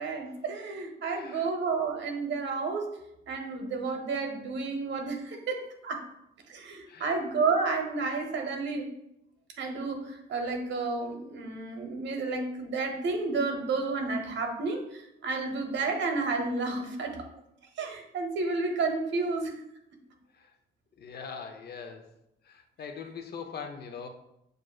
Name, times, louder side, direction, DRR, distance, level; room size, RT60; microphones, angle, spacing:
voice 1, 0.0-2.9 3.3-6.1 6.5-8.9 9.6-17.3 17.8-19.6, right 4 dB, 65° right, 4 dB, 0.9 m, -31 dB
voice 2, 1.1-1.5 6.9-7.1 20.3-20.5 21.0-22.1 22.4-24.1, left 6 dB, 55° left, 5 dB, 0.6 m, -42 dB
7.4 x 2.5 x 2.3 m, 0.81 s
cardioid pair, 90°, 20 cm